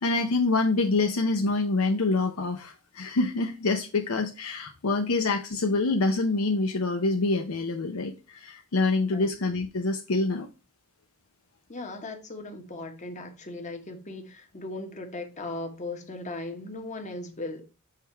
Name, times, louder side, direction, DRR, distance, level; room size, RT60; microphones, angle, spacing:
voice 1, 0.0-10.5, left 3 dB, 85° left, 0.7 m, -26 dB
voice 2, 11.7-17.6, left 2 dB, 35° left, 1.2 m, -38 dB
6.5 x 3.5 x 4.3 m
head